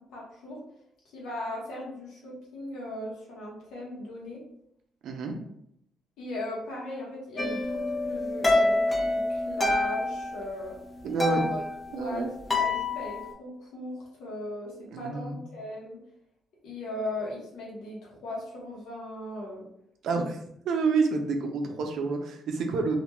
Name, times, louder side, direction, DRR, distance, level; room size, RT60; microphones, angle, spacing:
voice 1, 0.1-0.6 1.1-4.4 6.2-7.8 8.1-10.8 11.3-11.6 11.9-12.2 12.5-16.0 16.6-19.6, left 1 dB, 85° left, -3 dB, 1.0 m, -38 dB
voice 2, 5.0-5.3 11.0-11.4 11.9-12.3 14.9-15.4 20.0-20.4 20.6-23.0, right 4 dB, 75° right, 3 dB, 0.4 m, -28 dB
sound 1, 7.4-10.6 10.9-13.3, left 2 dB, 20° left, 0.5 m, -27 dB
2.5 x 2.1 x 3.0 m, 0.73 s
cardioid pair, 90°, 0 cm